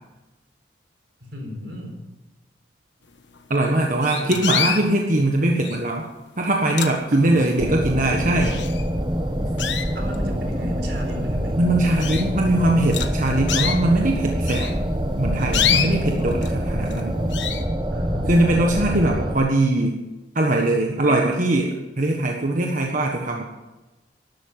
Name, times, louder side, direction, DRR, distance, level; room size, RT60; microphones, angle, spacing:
voice 1, 1.2-2.0 4.1-4.4 7.1-7.5 9.9-11.6 12.0-12.2 17.9-19.5, left 1 dB, 75° right, 2 dB, 4.1 m, -35 dB
sound 1, 3.4-3.5 4.0-4.9 5.6-6.0 6.5-7.4 7.9-8.0 8.4-9.1 9.6-10.3 10.9-11.0 11.4-11.5 12.0-12.3 12.9-13.8 14.5-16.5 16.9-17.1 17.3-17.6, left 9 dB, 85° left, 1.3 m, -26 dB
voice 2, 3.5-6.1 6.4-8.6 11.6-14.7 15.1-17.2 18.3-20.0 20.3-23.4, right 1 dB, 45° right, 0 dB, 1.4 m, -21 dB
sound 2, 7.6-19.4, equal, 25° right, 1.2 m, -25 dB
12.5 x 12.0 x 7.3 m, 1.1 s
head